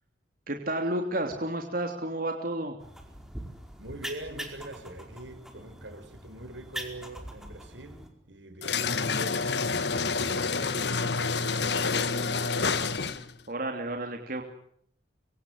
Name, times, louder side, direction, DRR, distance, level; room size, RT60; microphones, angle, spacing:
voice 1, 0.5-2.8 13.5-14.4, right 1 dB, 50° right, 3 dB, 3.1 m, -31 dB
sound 1, 2.8-8.1, equal, 5° right, 4.7 m, -42 dB
voice 2, 3.8-12.9, right 1 dB, 80° right, 11 dB, 5.0 m, -44 dB
sound 2, 8.6-13.4, left 4 dB, 65° left, 1.5 m, -28 dB
25.5 x 25.0 x 8.0 m, 0.67 s
head